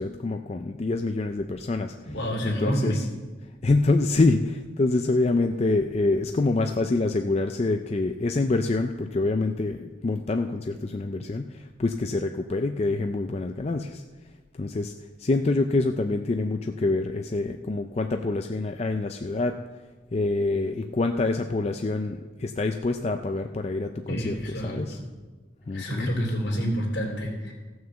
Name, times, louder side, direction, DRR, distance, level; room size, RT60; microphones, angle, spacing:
voice 1, 0.0-1.9 2.4-3.0 3.6-14.0 14.5-14.9 15.2-19.6 20.1-25.0 25.7-26.1, left 2 dB, 35° left, 6 dB, 0.4 m, -26 dB
voice 2, 2.1-3.0 24.1-25.1 25.7-27.5, equal, 75° left, -1 dB, 3.2 m, -28 dB
15.0 x 6.4 x 7.0 m, 1.3 s
head